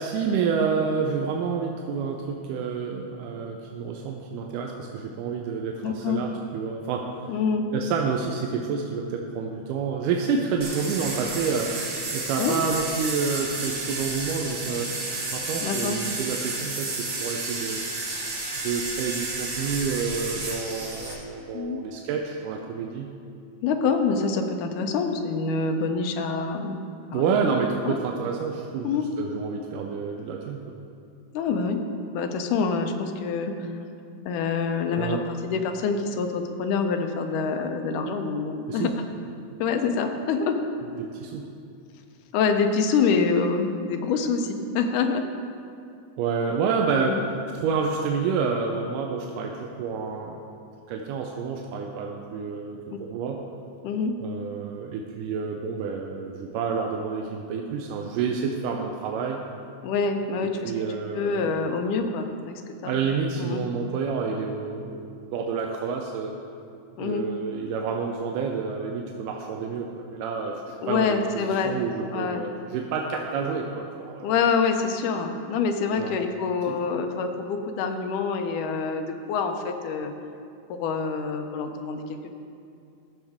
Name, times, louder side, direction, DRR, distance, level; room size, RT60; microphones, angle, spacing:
voice 1, 0.0-7.1 7.7-11.8 12.1-14.9 15.3-17.8 18.6-23.1 27.1-30.7 35.0-35.2 38.7-38.9 41.0-41.5 46.2-47.2 47.5-50.4 50.9-53.4 54.2-59.4 60.6-61.5 62.8-65.0 65.3-66.3 67.0-74.3 76.0-76.2, right 5 dB, 90° right, 1 dB, 2.2 m, -29 dB
voice 2, 5.8-6.2 7.3-7.6 12.4-12.6 15.6-16.0 21.5-21.8 23.6-26.8 27.1-27.5 27.9-28.0 28.8-29.0 31.3-31.8 32.1-33.7 34.3-38.9 39.6-40.6 42.3-45.2 46.9-47.2 53.8-54.1 59.8-60.7 61.1-62.9 63.4-63.6 67.0-67.3 70.8-71.7 72.1-72.4 74.2-80.1 80.7-82.3, left 5 dB, 80° left, 5 dB, 2.2 m, -26 dB
sound 1, 10.6-21.1, right 2 dB, 45° right, 1.7 m, -31 dB
15.0 x 6.5 x 3.6 m, 2.4 s
omnidirectional pair, 3.6 m